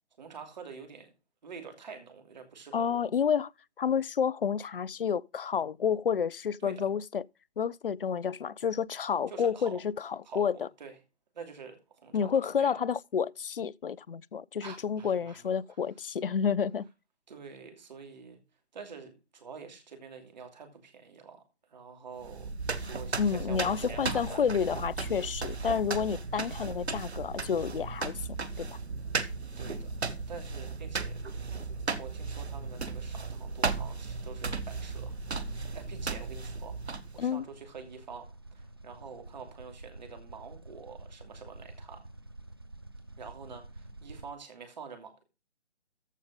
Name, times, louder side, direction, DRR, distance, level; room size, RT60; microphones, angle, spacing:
voice 1, 0.2-1.1 1.4-3.0 6.6-6.7 9.3-9.8 10.2-11.0 11.3-12.3 12.6-12.8 14.6-15.5 17.3-18.4 18.7-21.4 21.7-22.5 22.8-24.4 29.6-35.2 35.4-42.0 43.2-45.2, right 5 dB, 40° right, 2.9 m, -47 dB
voice 2, 2.7-3.5 3.8-7.2 7.6-10.7 12.1-16.9 23.2-28.2 28.6-28.7 37.2-37.4, left 7 dB, 55° left, 0.4 m, -30 dB
sound 1, 22.2-37.3, right 4 dB, 75° right, 1.2 m, -36 dB
sound 2, 32.7-44.3, right 2 dB, 25° right, 0.4 m, -49 dB
14.0 x 5.1 x 5.2 m
figure-of-eight pair, 145°, 33 cm